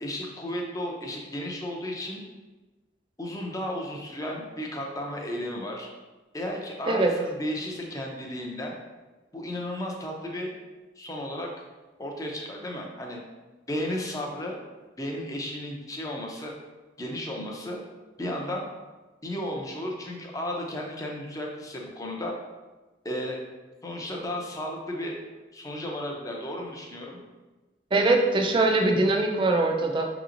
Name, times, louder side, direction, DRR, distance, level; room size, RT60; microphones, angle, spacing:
voice 1, 0.0-2.2 3.2-5.9 6.3-8.7 9.3-10.5 11.0-11.5 12.0-13.2 13.7-14.6 15.0-16.5 17.0-17.8 18.2-18.6 19.2-22.3 23.0-23.4 23.8-25.2 25.5-27.2, left 1 dB, 20° left, 0 dB, 0.5 m, -34 dB
voice 2, 27.9-30.1, right 2 dB, 30° right, 2 dB, 0.4 m, -22 dB
5.7 x 2.9 x 2.5 m, 1.2 s
head